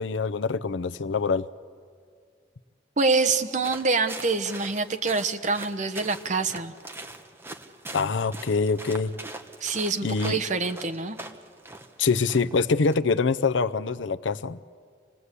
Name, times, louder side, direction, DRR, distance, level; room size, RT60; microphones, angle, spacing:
voice 1, 0.0-1.5 7.9-9.2 10.0-10.4 12.0-14.6, left 4 dB, 80° left, 12 dB, 0.6 m, -25 dB
voice 2, 3.0-6.7 9.6-11.2, right 3 dB, 40° right, 6 dB, 1.1 m, -26 dB
sound 1, 3.6-12.9, right 2 dB, 10° right, 1.1 m, -43 dB
27.0 x 19.5 x 8.3 m, 2.1 s
head